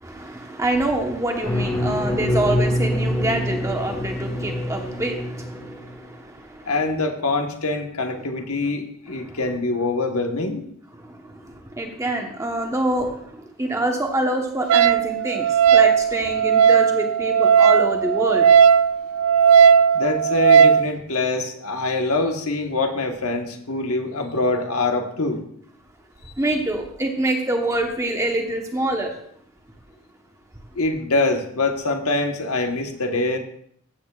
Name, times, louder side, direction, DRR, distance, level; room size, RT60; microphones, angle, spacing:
voice 1, 0.0-6.7 9.2-9.4 11.0-18.5 26.4-29.1, right 1 dB, 15° right, 3 dB, 1.0 m, -26 dB
sound 1, 1.4-5.9, equal, 15° left, 1.3 m, -25 dB
voice 2, 6.7-10.6 19.9-25.4 26.2-26.3 30.7-33.4, left 2 dB, 85° left, 4 dB, 1.3 m, -24 dB
Wind instrument woodwind instrument, 14.7-20.9, right 7 dB, 85° right, 0.3 m, -16 dB
15.0 x 8.3 x 2.4 m, 0.67 s
head